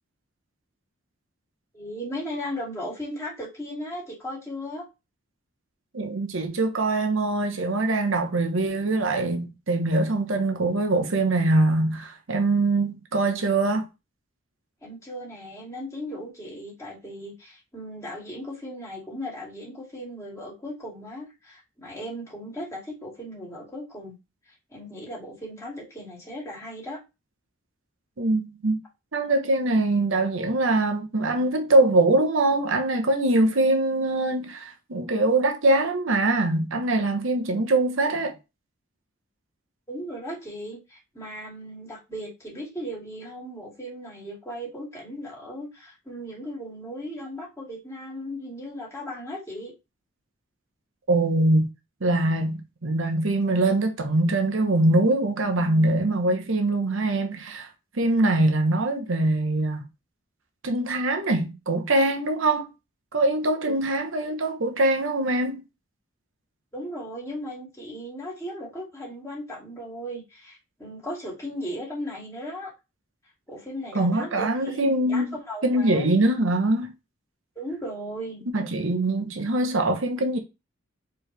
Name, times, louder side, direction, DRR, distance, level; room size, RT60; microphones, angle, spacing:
voice 1, 1.7-4.9 14.8-24.1 24.7-27.0 39.9-49.7 63.7-63.8 66.7-72.7 73.5-76.1 77.6-78.4, equal, 15° left, 2.4 m, -37 dB
voice 2, 5.9-13.9 28.2-28.8 29.1-38.4 51.1-51.7 52.0-57.7 57.9-59.9 60.6-62.7 63.1-65.6 73.9-75.4 75.6-76.9 78.5-80.4, right 2 dB, 70° right, 0.9 m, -23 dB
4.7 x 3.2 x 3.3 m
head